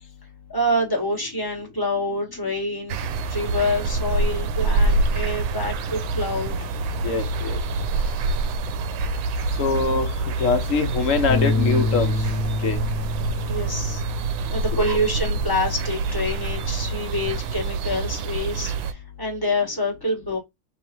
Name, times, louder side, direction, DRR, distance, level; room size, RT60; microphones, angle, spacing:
voice 1, 0.5-3.0 3.3-6.5 8.2-8.3 13.5-14.0 14.5-20.4, left 1 dB, 10° left, 1.8 m, -26 dB
sound 1, 2.9-18.9, right 3 dB, 80° right, 1.4 m, -26 dB
voice 2, 7.0-7.6 9.6-10.1 10.4-12.1 12.6-12.8 14.7-15.0, left 4 dB, 55° left, 0.9 m, -23 dB
Bass guitar, 11.3-15.8 16.2-17.5, left 2 dB, 75° left, 1.5 m, -28 dB
3.5 x 3.1 x 4.4 m
omnidirectional pair, 2.2 m